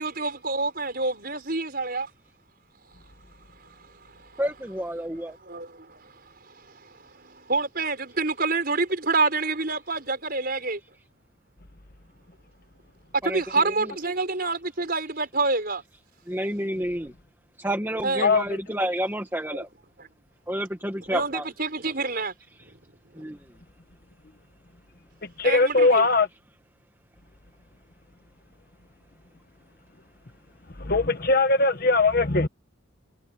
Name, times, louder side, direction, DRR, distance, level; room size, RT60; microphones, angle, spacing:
voice 1, 0.0-2.1 3.6-4.4 5.3-10.8 13.2-15.8 18.0-18.3 19.5-19.6 20.0-20.1 21.1-22.3 22.6-22.8 23.2-23.3 25.4-26.1, right 3 dB, 45° right, 5.9 m, -28 dB
voice 2, 4.4-5.4 13.3-13.4 16.3-17.1 17.6-19.7 20.5-21.4 23.2-23.4, equal, 10° right, 1.9 m, -29 dB
voice 3, 25.2-26.3 30.8-32.5, left 3 dB, 45° left, 1.3 m, -20 dB
head